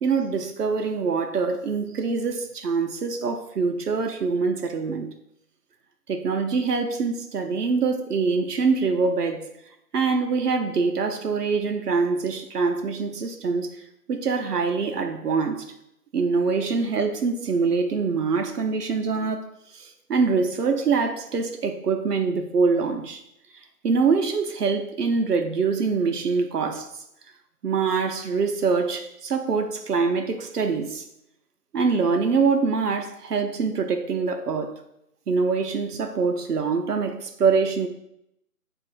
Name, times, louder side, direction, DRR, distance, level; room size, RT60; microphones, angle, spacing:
voice 1, 0.0-5.1 6.1-9.5 9.9-13.7 14.1-15.6 16.1-19.4 19.7-23.2 23.8-26.9 27.6-31.0 31.7-34.7 35.3-37.9, right 4 dB, 75° right, 0.7 m, -24 dB
4.7 x 2.5 x 3.7 m
figure-of-eight pair, 155°, 47 cm